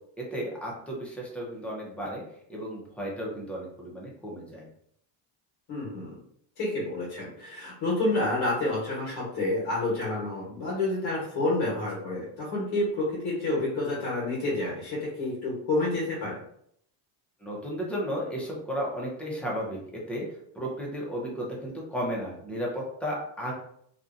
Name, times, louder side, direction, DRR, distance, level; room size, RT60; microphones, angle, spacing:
voice 1, 0.2-2.2 2.5-4.7 17.4-19.8 20.1-20.3 20.5-23.5, equal, 5° left, -4 dB, 0.6 m, -34 dB
voice 2, 5.7-6.2 6.6-16.4, left 2 dB, 50° left, -5 dB, 1.2 m, -29 dB
2.7 x 2.3 x 2.4 m, 0.69 s
cardioid pair, 125°, 48 cm